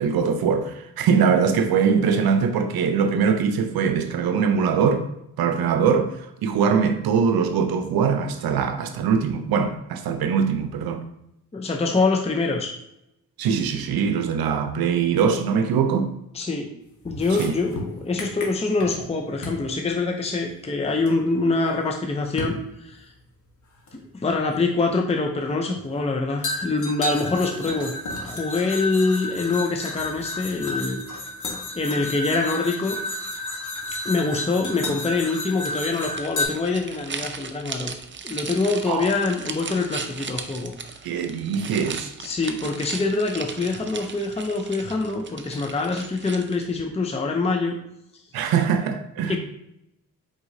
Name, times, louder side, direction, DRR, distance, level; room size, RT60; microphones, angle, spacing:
voice 1, 0.0-5.0 5.4-11.0 13.4-16.1 17.4-17.5 38.9-39.1 41.0-42.1 48.3-49.4, right 6 dB, 80° right, 0.6 m, -22 dB
voice 2, 11.5-12.7 16.3-16.7 17.0-23.1 23.9-27.9 28.2-31.0 31.8-33.0 34.0-37.9 38.2-40.7 42.2-47.7 49.2-49.4, left 3 dB, 15° left, 0.6 m, -25 dB
sound 1, 17.0-19.1 19.4-19.7 21.1-21.2 22.4-22.6 23.9-24.0 26.4-36.4, left 2 dB, 55° left, 1.3 m, -31 dB
sound 2, 35.6-46.8, right 5 dB, 30° right, 0.6 m, -37 dB
4.7 x 4.0 x 2.7 m
cardioid pair, 60°, 36 cm